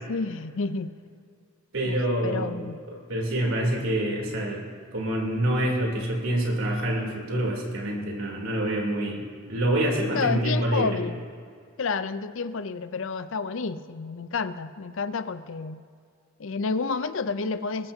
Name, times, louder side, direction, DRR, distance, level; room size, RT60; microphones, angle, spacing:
voice 1, 0.1-0.9 1.8-2.8 10.1-11.2 11.8-15.8 16.4-17.9, left 4 dB, 65° left, 13 dB, 0.5 m, -30 dB
voice 2, 1.7-2.5 3.1-4.6 4.9-10.9, right 1 dB, 70° right, -1 dB, 3.2 m, -26 dB
21.5 x 14.0 x 2.8 m, 2.3 s
head